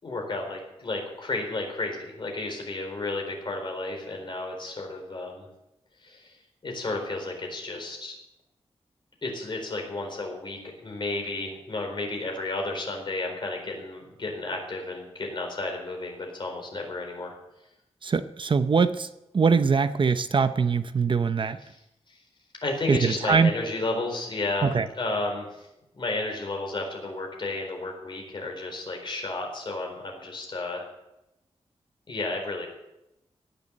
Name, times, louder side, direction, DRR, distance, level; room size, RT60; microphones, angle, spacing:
voice 1, 0.0-5.5 6.0-6.4 6.6-8.1 9.2-17.3 22.6-24.7 25.0-25.7 25.9-30.9 32.1-32.7, left 2 dB, 45° left, 1 dB, 4.3 m, -32 dB
voice 2, 18.0-19.1 19.3-21.6 22.9-23.5 24.6-24.9, right 5 dB, 50° right, 11 dB, 0.7 m, -22 dB
18.0 x 7.1 x 8.9 m, 0.90 s
wide cardioid pair, 150°, 11 cm